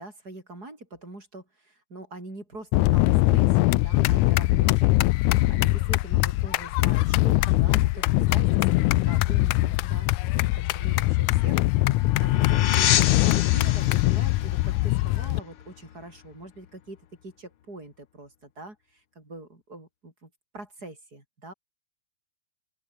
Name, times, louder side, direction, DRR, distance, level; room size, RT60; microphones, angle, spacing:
voice 1, 0.0-3.5 3.8-5.0 5.5-21.5, right 2 dB, 25° right, 7.2 m, -43 dB
sound 1, 2.7-15.4, left 19 dB, 80° left, 1.8 m, -22 dB
sound 2, 11.2-16.3, left 11 dB, 60° left, 1.5 m, -30 dB
open air
omnidirectional pair, 3.9 m